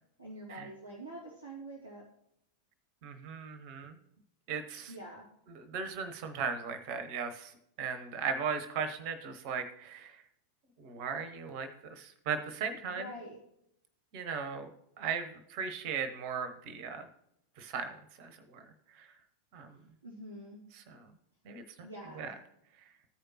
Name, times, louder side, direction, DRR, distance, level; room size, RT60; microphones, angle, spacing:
voice 1, 0.2-2.0 4.9-5.3 12.8-13.4 20.0-20.6 21.8-22.4, right 1 dB, 85° left, -7 dB, 2.0 m, -46 dB
voice 2, 3.0-4.0 4.5-4.9 5.5-7.5 7.8-10.2 10.8-13.0 14.1-14.7 15.0-17.1 17.6-18.7 18.9-19.1 19.5-19.7 20.7-21.0 21.4-21.6 22.2-22.3, right 6 dB, 45° right, 9 dB, 0.9 m, -37 dB
14.5 x 5.1 x 2.9 m, 0.77 s
figure-of-eight pair, 90°, 0 cm